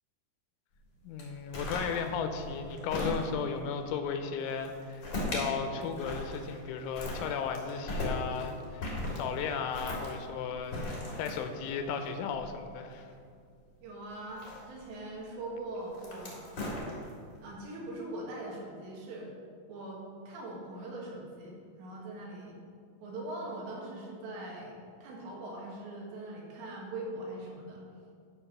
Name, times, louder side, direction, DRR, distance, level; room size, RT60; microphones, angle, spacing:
voice 1, 1.0-13.1, left 6 dB, 90° left, 7 dB, 3.1 m, -35 dB
sound 1, 1.2-3.6 4.4-5.5 5.8-6.7 6.9-13.1 14.2-15.0 15.8-17.3, left 1 dB, 55° left, 1.2 m, -37 dB
voice 2, 13.8-16.5 17.4-19.3 19.7-22.6 23.0-27.8, right 1 dB, 70° right, -3 dB, 3.7 m, -41 dB
11.0 x 4.7 x 5.7 m, 2.3 s
omnidirectional pair, 5.4 m